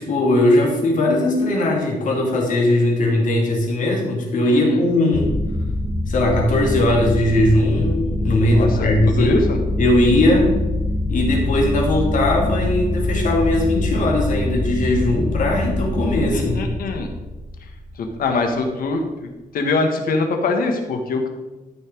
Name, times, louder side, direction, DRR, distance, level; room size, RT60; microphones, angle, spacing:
voice 1, 0.0-5.3 6.1-9.4 9.8-10.6 11.1-16.6, left 1 dB, 60° left, -1 dB, 2.7 m, -19 dB
voice 2, 4.4-4.8 8.5-9.6 16.3-17.1 18.0-19.0 19.5-21.3, left 3 dB, 85° left, 4 dB, 1.6 m, -23 dB
sound 1, 5.1-18.0, left 1 dB, ahead, 0.9 m, -24 dB
13.0 x 5.9 x 4.7 m, 1.1 s
wide cardioid pair, 140°, 15 cm